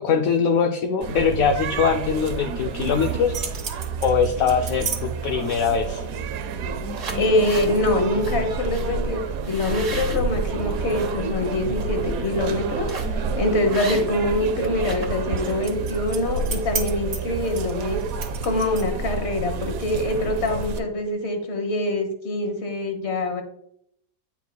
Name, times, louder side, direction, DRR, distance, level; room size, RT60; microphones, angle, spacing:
voice 1, 0.0-3.4 4.0-6.0, left 6 dB, 70° left, 4 dB, 1.0 m, -22 dB
sound 1, 1.0-20.8, right 4 dB, 70° right, 1.0 m, -29 dB
sound 2, 3.1-5.0 5.4-5.9 6.5-6.6 6.9-7.7 8.2-8.4 8.7-8.9 9.4-11.1 11.6-11.8 12.9-13.2 13.7-14.3 14.6-19.1, right 4 dB, 55° right, 1.5 m, -34 dB
voice 2, 7.1-18.0 18.4-23.4, left 1 dB, 45° left, 5 dB, 1.4 m, -24 dB
9.1 x 5.8 x 2.2 m, 0.70 s
omnidirectional pair, 1.7 m